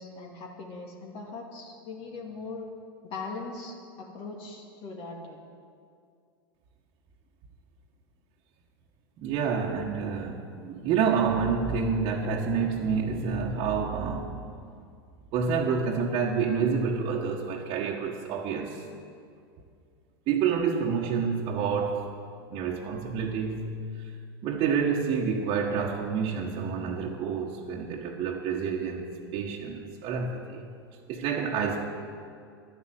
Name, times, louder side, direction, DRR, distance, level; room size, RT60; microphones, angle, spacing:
voice 1, 0.0-2.7 3.0-5.4, left 3 dB, 45° left, 0 dB, 2.3 m, -40 dB
voice 2, 9.2-14.4 15.3-18.8 20.3-22.1 22.5-23.9 24.4-30.6 31.1-31.8, right 6 dB, 45° right, -3 dB, 1.4 m, -28 dB
12.0 x 9.7 x 8.0 m, 2.3 s
hypercardioid pair, 95°, 12 cm